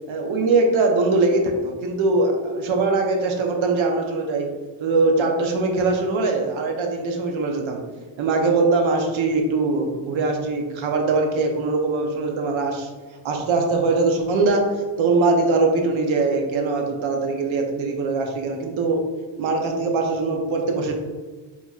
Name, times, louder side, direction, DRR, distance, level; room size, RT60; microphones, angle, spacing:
voice 1, 0.1-4.5 4.8-7.8 8.2-12.9 13.2-19.0 19.4-20.9, right 3 dB, 80° right, 2 dB, 0.7 m, -22 dB
4.4 x 2.8 x 2.3 m, 1.3 s
wide cardioid pair, 115°, 46 cm